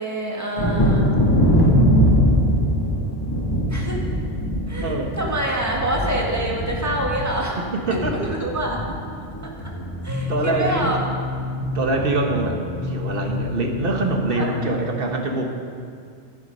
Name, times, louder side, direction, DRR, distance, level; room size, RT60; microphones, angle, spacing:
voice 1, 0.0-1.3 3.7-4.0 4.7-7.6 7.9-8.8 10.0-11.0 14.3-14.5, right 1 dB, 15° right, -2 dB, 1.8 m, -26 dB
Thunder, 0.6-10.0 10.3-11.0 11.4-11.5 11.9-12.1, equal, 20° left, 1.3 m, -22 dB
voice 2, 4.8-5.1 7.6-8.3 10.3-11.0 11.7-15.5, right 2 dB, 55° right, 2 dB, 1.4 m, -24 dB
sound 1, 9.6-14.9, left 3 dB, 80° right, 3.2 m, -30 dB
11.0 x 10.5 x 5.4 m, 2.3 s
omnidirectional pair, 1.2 m